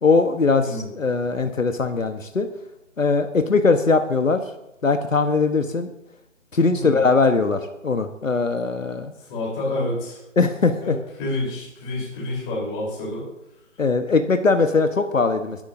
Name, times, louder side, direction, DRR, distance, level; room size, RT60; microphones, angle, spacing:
voice 1, 0.0-2.5 3.0-4.4 4.8-5.9 6.5-9.1 10.4-10.9 13.8-15.6, left 4 dB, 75° left, 7 dB, 1.2 m, -20 dB
voice 2, 0.5-0.9 6.7-7.0 9.3-10.2 10.8-10.9 11.2-13.3, left 1 dB, 10° left, -5 dB, 3.8 m, -28 dB
21.0 x 11.5 x 2.7 m, 0.91 s
figure-of-eight pair, 155°, 39 cm